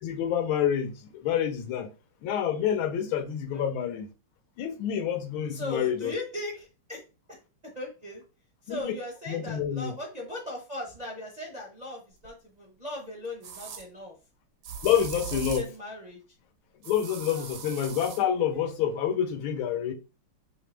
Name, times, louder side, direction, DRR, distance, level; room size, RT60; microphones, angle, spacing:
voice 1, 0.0-1.9 2.2-4.1 4.6-6.1 8.7-8.9 9.3-9.9 14.8-15.6 16.8-19.9, left 9 dB, 75° left, 1.5 m, -28 dB
voice 2, 3.5-3.9 5.5-8.2 8.6-14.2 14.9-15.0 15.3-16.2 17.3-17.6 18.6-18.7, left 1 dB, 40° right, 0.6 m, -39 dB
sound 1, 12.2-12.3 13.4-13.8 14.6-15.8 16.8-18.2, right 7 dB, 65° right, 1.1 m, -39 dB
5.5 x 2.9 x 3.3 m
omnidirectional pair, 2.3 m